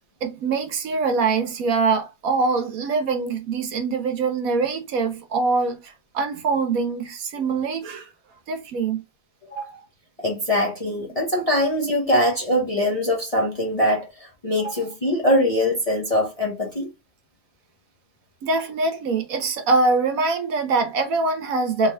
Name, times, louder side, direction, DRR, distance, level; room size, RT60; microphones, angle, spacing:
voice 1, 0.2-8.1 8.5-9.0 9.6-9.8 18.4-21.9, right 4 dB, 70° right, 1.3 m, -23 dB
voice 2, 10.2-16.9, left 1 dB, 30° left, 0.7 m, -22 dB
3.6 x 2.9 x 3.3 m
omnidirectional pair, 1.6 m